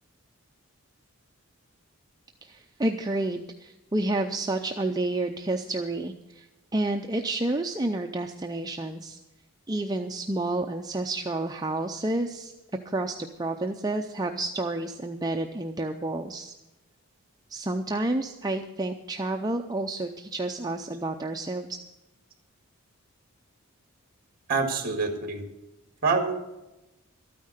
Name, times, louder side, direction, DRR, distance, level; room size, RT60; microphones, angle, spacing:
voice 1, 2.4-6.5 6.7-9.2 9.7-12.5 12.9-16.5 17.5-21.8, right 2 dB, 15° right, 3 dB, 0.5 m, -30 dB
voice 2, 24.5-25.4 26.0-26.3, right 4 dB, 40° right, 5 dB, 2.0 m, -26 dB
13.0 x 9.3 x 6.5 m, 0.99 s
head